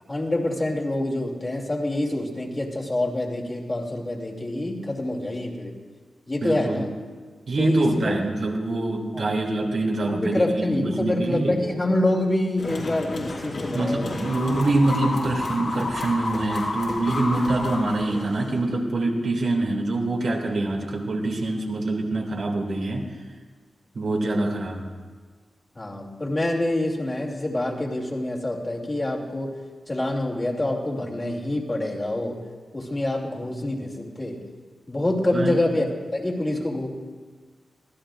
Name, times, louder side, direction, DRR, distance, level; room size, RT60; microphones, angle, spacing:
voice 1, 0.1-5.7 6.3-6.9 7.6-8.2 9.1-9.3 10.1-14.2 25.8-29.6 29.9-32.4 32.7-34.4 34.9-36.9, left 1 dB, 30° left, -2 dB, 2.8 m, -26 dB
voice 2, 6.4-6.8 7.5-11.6 13.7-23.1 23.9-24.9 35.3-35.6, right 2 dB, 70° right, -1 dB, 2.7 m, -25 dB
sound 1, 12.6-18.6, left 2 dB, 65° left, 4.7 m, -31 dB
25.0 x 15.5 x 2.5 m, 1.5 s
cardioid pair, 60°, 0 cm